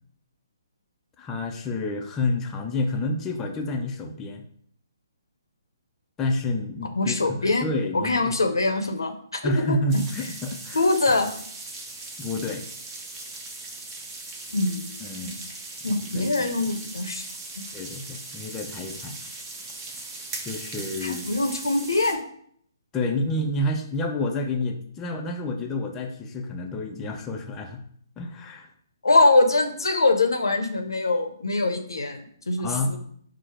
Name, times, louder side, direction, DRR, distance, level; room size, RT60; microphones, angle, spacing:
voice 1, 1.2-4.4 6.2-8.3 9.4-10.8 11.1-11.2 12.2-12.6 15.0-15.4 15.8-16.5 17.7-19.2 20.4-21.3 22.9-27.8 28.2-28.7 32.6-32.9, left 2 dB, 15° left, 3 dB, 0.4 m, -29 dB
voice 2, 7.0-7.6 7.9-9.8 10.7-11.3 14.5-15.3 15.8-17.3 21.0-22.2 29.0-33.0, left 2 dB, 90° left, 6 dB, 0.6 m, -23 dB
sound 1, 9.9-22.1, right 2 dB, 20° right, 0.7 m, -39 dB
4.7 x 2.0 x 4.4 m, 0.64 s
hypercardioid pair, 145°, 2 cm